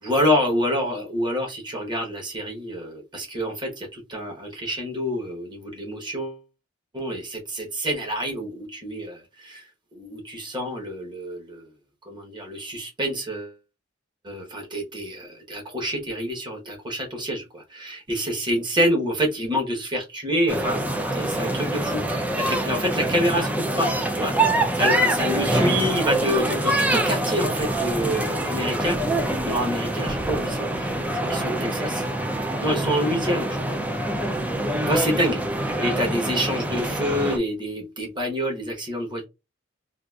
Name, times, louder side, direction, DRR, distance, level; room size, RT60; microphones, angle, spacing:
voice 1, 0.0-6.4 6.9-9.7 9.9-11.7 12.1-13.5 14.2-20.8 21.1-24.3 24.7-29.0 29.4-32.1 32.6-33.8 34.8-35.4 35.8-39.2, equal, 25° right, 1 dB, 1.0 m, -27 dB
sound 1, 20.5-37.4, right 1 dB, 10° right, 0.4 m, -25 dB
3.9 x 2.5 x 2.3 m, 0.25 s
head